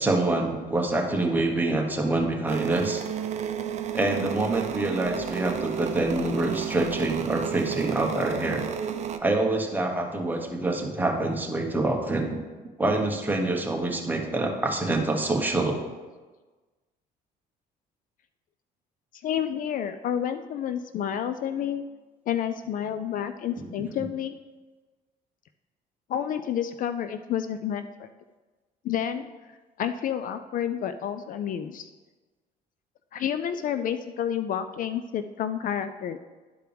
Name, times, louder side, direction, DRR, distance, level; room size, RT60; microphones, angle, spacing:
voice 1, 0.0-3.0 3.9-8.7 9.2-12.4 12.8-15.8 23.6-23.9, right 2 dB, 10° right, 1 dB, 1.2 m, -26 dB
sound 1, 2.5-9.2, right 8 dB, 45° right, 0.6 m, -32 dB
voice 2, 19.1-21.8 22.3-24.4 26.1-28.1 28.8-29.3 29.8-31.9 33.1-36.2, left 9 dB, 55° left, 10 dB, 0.4 m, -30 dB
11.5 x 4.6 x 3.4 m, 1.3 s
cardioid pair, 110°, 17 cm